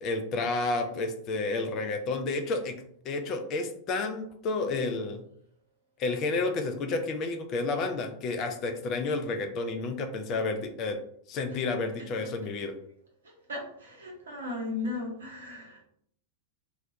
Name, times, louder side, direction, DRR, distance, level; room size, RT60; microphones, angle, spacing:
voice 1, 0.0-2.7 3.0-5.2 6.0-11.0 11.3-12.7, left 3 dB, 35° left, 6 dB, 0.3 m, -30 dB
voice 2, 13.5-15.8, left 2 dB, 70° right, -1 dB, 0.7 m, -36 dB
2.2 x 2.1 x 2.7 m, 0.67 s
figure-of-eight pair, 90°, 0 cm